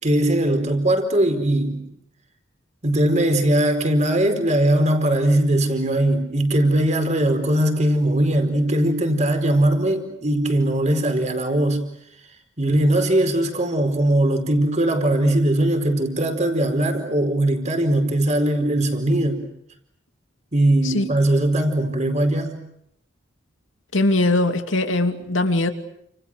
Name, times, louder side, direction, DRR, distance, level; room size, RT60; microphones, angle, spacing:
voice 1, 0.0-1.9 2.8-11.9 12.6-19.5 20.5-22.6, right 1 dB, 40° right, 4.7 m, -20 dB
voice 2, 23.9-25.7, left 2 dB, 90° left, 2.8 m, -20 dB
30.0 x 28.5 x 6.4 m
head